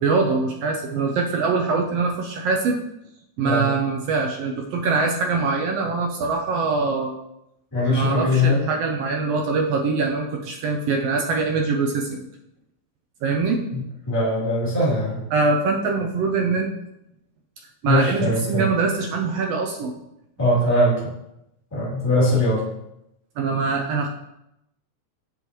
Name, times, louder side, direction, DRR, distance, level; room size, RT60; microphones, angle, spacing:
voice 1, 0.0-2.8 3.4-7.1 7.9-12.3 13.2-13.6 15.3-16.7 17.8-19.9 23.4-24.1, right 4 dB, 90° right, 2 dB, 1.4 m, -23 dB
voice 2, 7.7-8.6 13.7-15.2 17.8-18.7 20.4-21.0 21.7-22.6, left 1 dB, 5° left, -8 dB, 2.4 m, -21 dB
7.0 x 6.9 x 3.0 m, 0.84 s
omnidirectional pair, 3.5 m